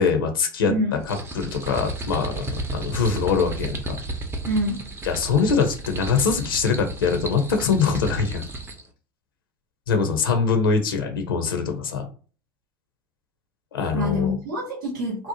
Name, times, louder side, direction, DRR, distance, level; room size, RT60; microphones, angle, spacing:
voice 1, 0.0-4.0 5.0-8.4 9.9-12.1 13.7-14.3, left 5 dB, 85° left, 5 dB, 0.6 m, -23 dB
voice 2, 0.7-1.0 4.4-4.9 13.9-15.3, equal, 75° right, -3 dB, 0.9 m, -26 dB
sound 1, 1.0-8.9, right 2 dB, 20° right, 0.6 m, -33 dB
2.7 x 2.0 x 2.7 m, 0.38 s
hypercardioid pair, 80°, 11 cm